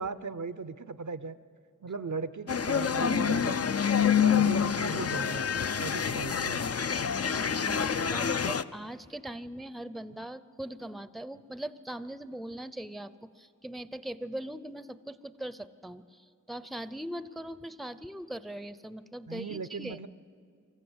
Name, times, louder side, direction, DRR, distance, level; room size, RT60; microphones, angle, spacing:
voice 1, 0.0-1.4 1.8-3.7 4.0-6.6 19.3-20.1, right 4 dB, 70° right, 14 dB, 0.6 m, -38 dB
sound 1, 2.5-8.6, left 7 dB, 50° left, 0.5 m, -27 dB
voice 2, 7.3-20.0, right 1 dB, ahead, 14 dB, 0.6 m, -41 dB
25.0 x 14.0 x 8.0 m, 2.2 s
wide cardioid pair, 40°, 31 cm